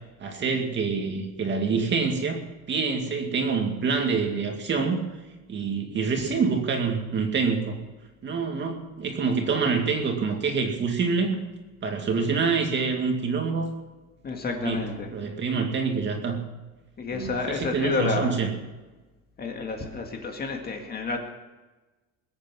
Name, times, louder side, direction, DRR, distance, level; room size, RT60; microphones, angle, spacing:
voice 1, 0.2-2.4 2.7-5.0 5.5-7.8 8.2-11.4 11.8-13.7 14.6-14.9 15.1-16.4 17.1-18.5, right 5 dB, 35° right, 3 dB, 2.3 m, -26 dB
voice 2, 14.2-15.1 17.0-18.3 19.4-21.2, left 4 dB, 30° left, 3 dB, 2.0 m, -29 dB
21.5 x 8.6 x 6.1 m, 1.2 s
cardioid pair, 155°, 32 cm